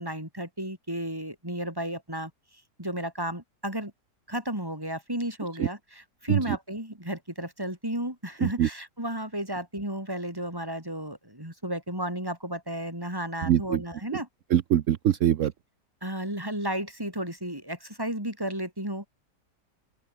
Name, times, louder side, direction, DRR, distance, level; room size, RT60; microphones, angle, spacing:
voice 1, 0.0-2.3 2.8-3.9 4.3-14.3 16.0-19.1, right 1 dB, 10° right, 6.1 m, -33 dB
voice 2, 13.5-13.8 14.5-15.5, right 11 dB, 60° right, 0.9 m, -23 dB
open air
omnidirectional pair, 1.9 m